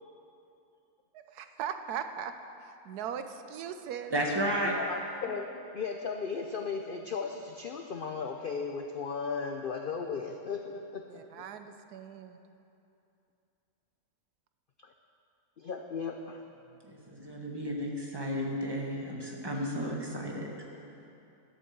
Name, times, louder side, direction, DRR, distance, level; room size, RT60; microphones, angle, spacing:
voice 1, 1.1-2.3 2.6-4.1 11.1-12.4, right 8 dB, 85° right, 8 dB, 1.2 m, -39 dB
voice 2, 4.1-4.7 16.9-20.5, equal, 15° right, -1 dB, 1.4 m, -33 dB
voice 3, 4.6-11.2 14.8-14.9 15.6-16.4, left 5 dB, 65° left, 4 dB, 0.5 m, -36 dB
11.5 x 8.2 x 7.2 m, 2.8 s
omnidirectional pair, 1.6 m